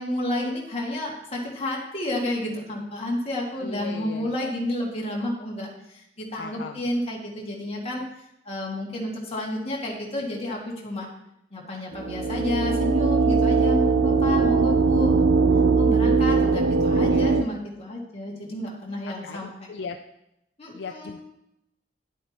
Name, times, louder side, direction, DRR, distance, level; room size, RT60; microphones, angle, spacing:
voice 1, 0.0-8.0 8.5-11.1 11.5-15.3 15.8-19.5 20.6-21.2, left 1 dB, 30° left, -2 dB, 2.0 m, -31 dB
voice 2, 3.6-4.5 6.4-6.8 17.0-17.4 19.2-20.0 20.7-21.2, left 5 dB, 65° left, 6 dB, 0.4 m, -38 dB
sound 1, 11.9-17.4, right 4 dB, 70° right, 0.4 m, -20 dB
11.0 x 8.4 x 2.9 m, 0.83 s
head